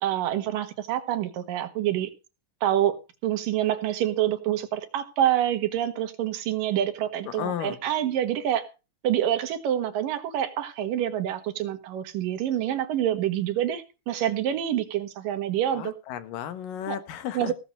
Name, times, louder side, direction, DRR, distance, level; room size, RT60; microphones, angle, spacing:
voice 1, 0.0-2.1 2.6-3.0 3.2-8.7 9.0-15.9 16.9-17.0 17.3-17.5, right 11 dB, 90° right, 8 dB, 3.1 m, -27 dB
voice 2, 7.4-7.8 15.7-17.5, left 10 dB, 85° left, 11 dB, 2.9 m, -34 dB
17.0 x 6.5 x 6.6 m, 0.31 s
omnidirectional pair, 3.8 m